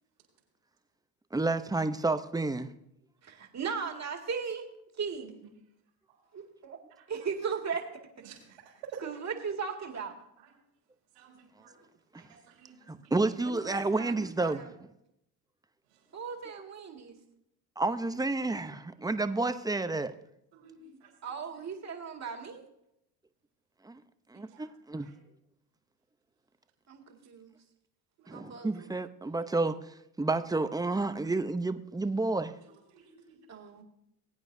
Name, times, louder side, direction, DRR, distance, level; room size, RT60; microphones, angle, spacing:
voice 1, 1.3-2.7 12.9-14.6 17.8-20.1 23.8-24.0 24.3-25.1 28.3-29.8 30.2-32.5, right 3 dB, 10° right, 10 dB, 0.7 m, -30 dB
voice 2, 3.2-4.6 5.0-5.3 7.1-7.8 9.0-10.1 13.4-14.7 16.1-17.2 21.2-22.6 26.9-27.5 28.3-28.9 33.5-33.8, right 6 dB, 35° right, 3 dB, 2.2 m, -37 dB
voice 3, 8.2-8.6 8.9-9.0 10.4-10.5 11.1-11.7 12.1-13.1 20.5-21.1 24.5-24.7 24.9-25.2 28.2-28.6 32.9-33.4, right 6 dB, 85° right, -5 dB, 4.5 m, -52 dB
20.5 x 8.9 x 2.7 m, 0.80 s
supercardioid pair, 80°, 44 cm